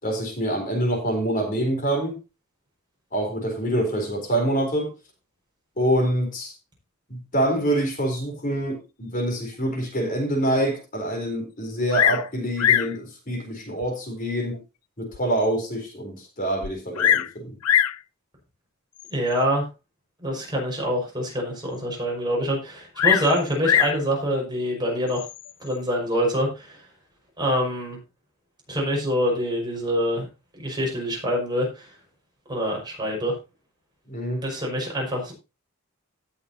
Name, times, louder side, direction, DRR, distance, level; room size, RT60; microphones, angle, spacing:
voice 1, 0.0-2.2 3.1-4.9 5.8-6.5 7.1-14.6 15.0-17.5 34.1-34.4, right 1 dB, 40° left, 3 dB, 3.9 m, -26 dB
Bird vocalization bird call bird song, 11.9-12.3 12.6-13.0 13.8-13.9 14.5-14.6 15.1-15.2 15.4-15.5 16.6-17.3 17.6-18.0 19.0-19.3 23.0-24.0 25.1-25.5, left 10 dB, 90° left, 0.6 m, -22 dB
voice 2, 19.1-19.7 20.2-25.2 25.6-26.8 27.4-28.0 28.7-30.3 30.5-31.9 32.5-33.3 34.4-35.3, equal, 20° right, 0 dB, 5.2 m, -25 dB
17.5 x 7.0 x 2.8 m, 0.28 s
head